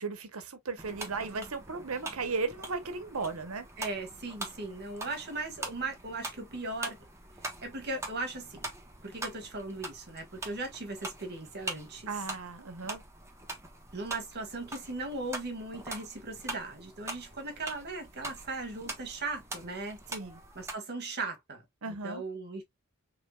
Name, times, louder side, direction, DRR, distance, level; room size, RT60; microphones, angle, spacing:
voice 1, 0.0-3.7 12.1-13.0 20.1-20.4 21.8-22.2, right 4 dB, 80° right, 1.1 m, -36 dB
sound 1, 0.8-20.7, right 2 dB, 15° right, 1.2 m, -43 dB
voice 2, 3.8-7.0 7.6-8.7 9.0-12.1 13.9-20.0 20.6-22.6, right 3 dB, 50° right, 1.8 m, -38 dB
5.1 x 3.4 x 2.4 m
head